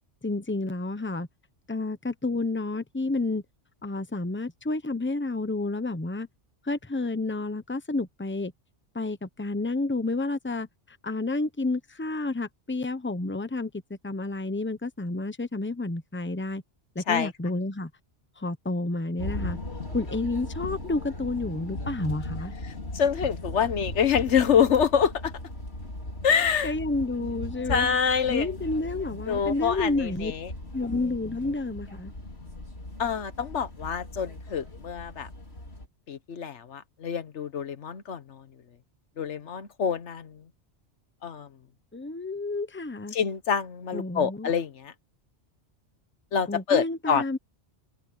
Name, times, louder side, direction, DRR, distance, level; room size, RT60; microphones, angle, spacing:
voice 1, 0.2-1.3 1.7-3.4 3.8-6.3 6.6-8.5 8.9-10.7 11.0-13.7 14.0-16.6 16.9-17.9 18.4-19.6 19.9-22.5 26.6-28.0 28.3-30.3 30.7-32.1 41.9-43.1 43.9-44.5 46.5-47.4, left 2 dB, 10° left, 1.0 m, -30 dB
sound 1, 19.2-35.9, left 1 dB, 65° left, 4.1 m, -38 dB
voice 2, 22.6-25.3 26.2-26.7 27.7-28.5 29.3-30.5 33.0-35.3 36.1-38.5 39.2-40.4 41.2-41.5 43.1-44.9 46.3-47.4, left 7 dB, 85° left, 1.4 m, -26 dB
omnidirectional pair, 1.2 m